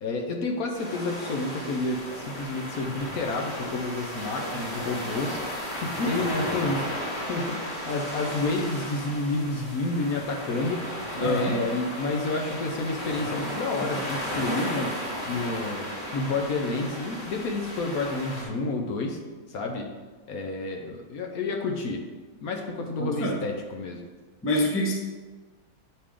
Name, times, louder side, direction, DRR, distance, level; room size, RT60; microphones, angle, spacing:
voice 1, 0.0-10.8 11.2-14.9 15.3-15.9 16.1-19.2 19.5-19.9 20.3-22.0 22.4-24.1, left 2 dB, 65° left, 2 dB, 1.2 m, -30 dB
sound 1, 0.7-18.4, equal, 40° left, 2.0 m, -34 dB
voice 2, 11.2-11.5 23.0-23.4 24.4-24.9, equal, 15° left, -1 dB, 0.5 m, -26 dB
8.5 x 4.9 x 3.7 m, 1.3 s
omnidirectional pair, 1.9 m